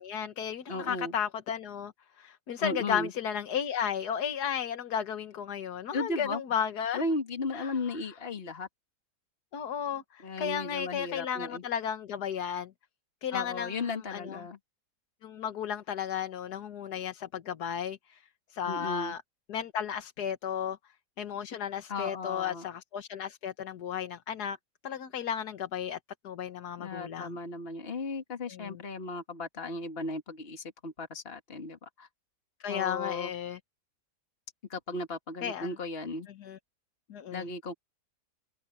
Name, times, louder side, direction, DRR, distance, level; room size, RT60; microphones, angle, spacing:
voice 1, 0.0-1.9 2.2-7.0 7.5-8.0 9.5-12.7 13.2-14.4 15.2-18.2 18.5-19.2 19.5-20.8 21.2-24.6 24.8-26.0 26.2-27.3 28.5-28.8 32.6-33.6 35.4-35.7 36.4-36.6 37.1-37.5, left 8 dB, 65° left, 1.7 m, -34 dB
voice 2, 0.7-1.1 2.6-3.1 5.9-6.4 6.9-8.7 10.2-11.6 13.3-14.6 18.6-19.1 21.9-22.6 26.8-32.1 32.7-33.3 34.7-36.3 37.3-37.7, left 3 dB, 35° left, 2.2 m, -35 dB
omnidirectional pair, 1.8 m